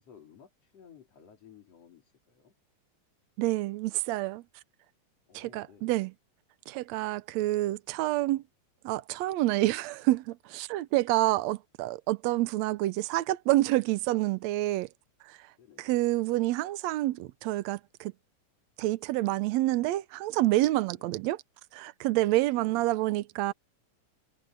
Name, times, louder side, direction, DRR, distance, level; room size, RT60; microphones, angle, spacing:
voice 1, 0.0-2.5 5.3-5.9 15.6-15.9 21.0-21.2 22.5-22.9, left 7 dB, 50° left, 4.2 m, -56 dB
voice 2, 3.4-4.4 5.3-6.1 6.7-8.4 8.8-14.9 15.2-15.5 15.8-18.1 18.8-21.4 21.7-23.5, right 17 dB, 85° right, 1.6 m, -28 dB
omnidirectional pair, 3.8 m